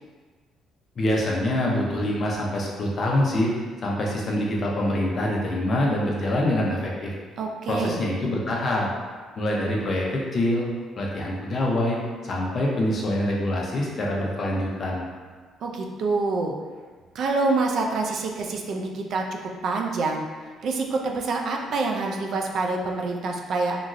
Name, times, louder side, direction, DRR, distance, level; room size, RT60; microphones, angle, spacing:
voice 1, 1.0-3.5 3.8-7.1 7.7-8.9 9.4-10.1 10.3-10.7 11.0-12.0 12.2-15.1, left 1 dB, 40° left, -2 dB, 0.6 m, -25 dB
voice 2, 7.4-8.0 15.6-16.5 17.1-20.2 20.6-23.8, right 3 dB, 55° right, 1 dB, 0.3 m, -26 dB
2.9 x 2.5 x 2.5 m, 1.4 s
cardioid pair, 125°, 0 cm